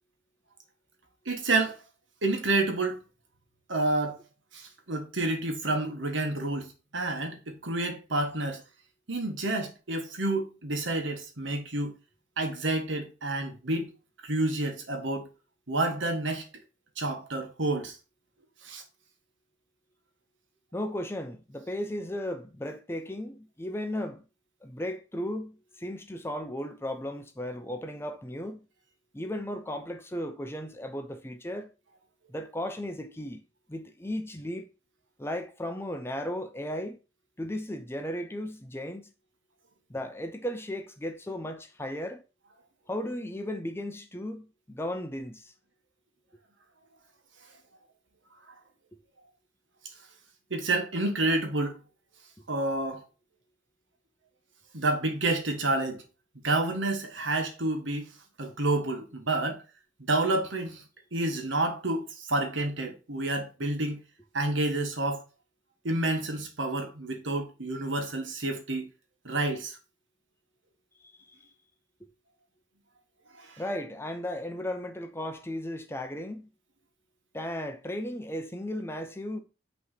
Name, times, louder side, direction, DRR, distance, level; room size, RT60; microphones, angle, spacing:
voice 1, 1.2-1.8 2.2-3.0 3.7-4.2 4.5-8.6 9.1-11.9 12.4-13.9 14.2-15.3 15.7-16.4 17.0-17.9 18.6-18.8 50.5-51.8 52.5-53.0 54.7-56.0 56.4-58.1 58.4-59.6 60.1-60.8 61.1-64.0 64.3-65.2 65.8-68.9 69.2-69.7 73.4-73.6, right 2 dB, 75° right, 1.5 m, -29 dB
voice 2, 20.7-24.2 24.6-28.6 29.1-31.7 32.3-33.4 33.7-34.7 35.2-37.0 37.4-39.0 39.9-42.2 42.9-45.5 71.0-71.4 73.6-76.5 77.3-79.4, left 1 dB, 15° left, 0.7 m, -35 dB
5.8 x 3.2 x 5.7 m
head